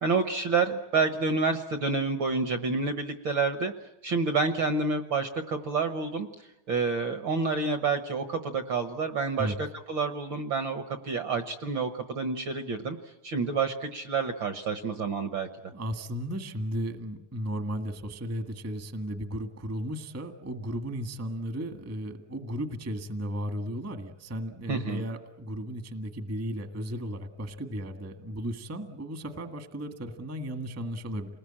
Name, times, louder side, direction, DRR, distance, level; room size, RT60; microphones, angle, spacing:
voice 1, 0.0-3.7 4.0-9.5 9.9-13.0 13.2-15.5 24.7-25.0, right 4 dB, 55° right, 8 dB, 1.4 m, -28 dB
voice 2, 15.7-31.4, equal, 10° right, 7 dB, 0.9 m, -35 dB
29.0 x 20.5 x 8.8 m, 0.92 s
omnidirectional pair, 3.3 m